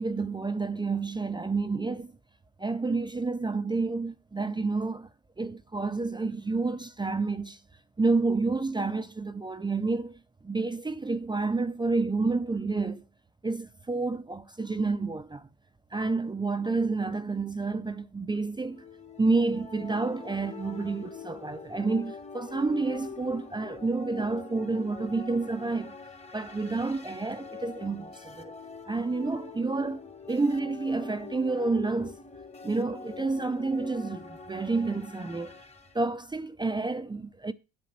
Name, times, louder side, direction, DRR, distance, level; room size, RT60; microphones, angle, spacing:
voice 1, 0.0-2.1 2.6-5.1 5.4-7.6 8.0-13.0 13.4-15.5 15.9-18.8 19.2-26.0 26.3-28.5 28.9-32.2 32.6-35.5 35.9-37.5, right 3 dB, 15° right, 0.6 m, -29 dB
sound 1, 18.7-35.9, left 4 dB, 20° left, 1.4 m, -44 dB
7.8 x 7.5 x 6.5 m
supercardioid pair, 70°, 32 cm